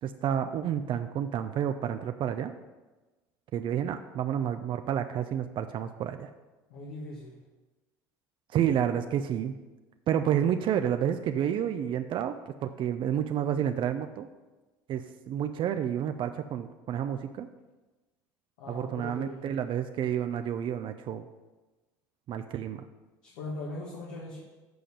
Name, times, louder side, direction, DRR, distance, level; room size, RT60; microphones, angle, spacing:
voice 1, 0.0-2.5 3.5-6.3 8.5-9.5 10.1-14.3 14.9-17.5 18.7-21.3 22.3-22.8, right 9 dB, 50° right, 8 dB, 0.5 m, -30 dB
voice 2, 6.7-7.4 18.6-19.5 23.2-24.4, left 2 dB, 75° left, -4 dB, 1.7 m, -40 dB
7.9 x 4.9 x 7.0 m, 1.2 s
hypercardioid pair, 75°, 11 cm